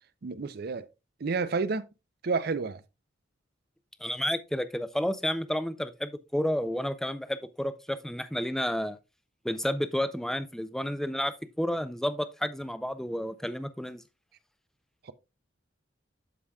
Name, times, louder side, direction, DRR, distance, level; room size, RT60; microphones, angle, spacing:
voice 1, 0.2-0.9 1.2-1.9 2.2-2.8 15.0-15.1, right 4 dB, 55° right, 0.5 m, -30 dB
voice 2, 4.0-9.0 9.4-14.0, equal, ahead, 0.4 m, -31 dB
12.5 x 5.0 x 2.3 m
head